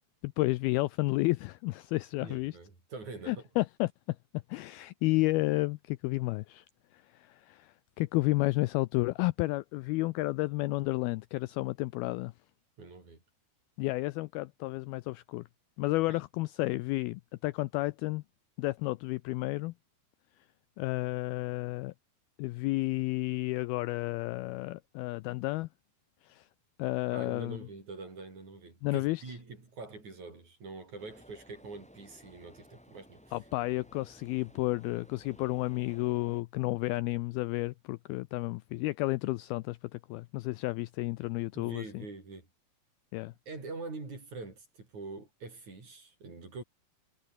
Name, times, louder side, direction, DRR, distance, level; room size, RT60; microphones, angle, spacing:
voice 1, 0.2-2.6 3.3-6.7 6.9-12.3 13.8-15.4 15.8-18.2 18.6-19.7 20.8-21.9 22.4-25.7 26.2-26.5 26.8-27.6 28.8-29.2 33.3-42.1 43.1-43.3, left 21 dB, 80° left, 2.3 m, -31 dB
voice 2, 2.2-3.5 12.8-13.2 16.1-16.2 27.1-33.3 41.5-42.5 43.5-46.6, right 3 dB, 45° right, 8.0 m, -44 dB
sound 1, 31.0-36.4, equal, ahead, 5.7 m, -57 dB
omnidirectional pair, 4.8 m